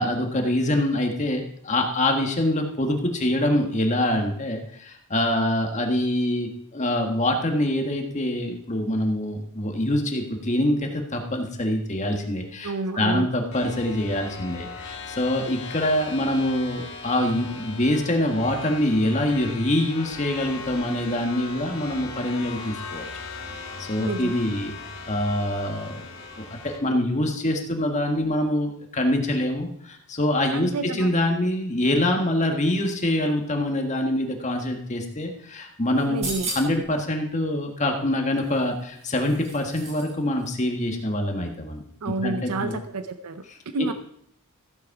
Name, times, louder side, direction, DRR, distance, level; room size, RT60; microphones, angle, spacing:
voice 1, 0.0-23.1 23.8-24.7 25.1-26.0 26.4-36.3 36.5-41.8 42.2-42.7 43.8-43.9, left 1 dB, 30° left, 3 dB, 1.6 m, -25 dB
voice 2, 12.6-13.3 24.0-24.4 30.5-31.1 36.1-36.5 42.0-43.4 43.7-43.9, right 3 dB, 85° right, 10 dB, 0.6 m, -29 dB
sound 1, 13.5-26.8, left 4 dB, 65° left, 2.9 m, -38 dB
sound 2, 36.0-36.9 38.4-40.1 40.4-40.5, right 2 dB, 30° right, 2.5 m, -35 dB
15.0 x 8.3 x 4.8 m, 0.69 s
head